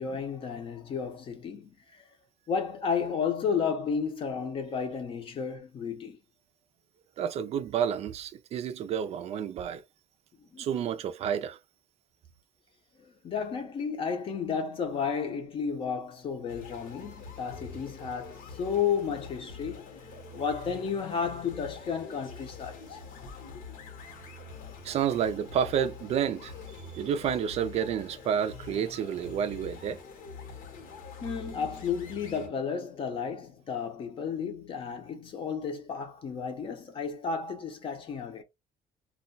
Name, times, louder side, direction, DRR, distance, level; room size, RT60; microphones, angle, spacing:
voice 1, 0.0-2.1 2.5-6.2 10.5-10.7 13.2-19.9 20.3-23.0 31.2-38.4, left 6 dB, 35° left, 0.7 m, -32 dB
voice 2, 7.2-9.8 10.6-11.6 24.8-26.5 26.9-30.0, right 8 dB, 45° right, 0.4 m, -30 dB
sound 1, 16.5-32.5, left 4 dB, 75° left, 0.9 m, -45 dB
2.3 x 2.2 x 3.8 m
cardioid pair, 160°, 15 cm